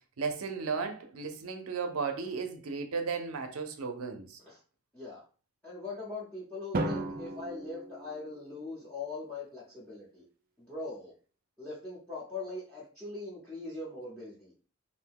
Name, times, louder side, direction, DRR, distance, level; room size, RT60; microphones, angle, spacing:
voice 1, 0.2-4.4, right 5 dB, 85° right, 0.6 m, -35 dB
voice 2, 5.6-10.2 10.6-11.1 11.6-14.5, left 3 dB, 5° left, 0.8 m, -41 dB
Drum, 6.7-8.8, right 2 dB, 40° right, 0.4 m, -36 dB
2.7 x 2.1 x 3.4 m
head